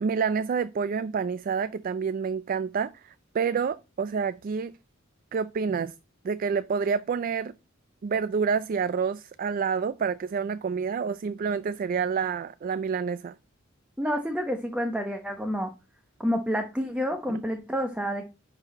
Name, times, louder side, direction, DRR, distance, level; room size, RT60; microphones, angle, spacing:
voice 1, 0.0-4.7 5.3-5.9 6.2-7.5 8.0-13.3 17.3-17.4, right 6 dB, 45° right, 0.3 m, -28 dB
voice 2, 14.0-15.7 16.2-18.3, equal, 5° right, 0.8 m, -29 dB
10.5 x 4.1 x 4.1 m
head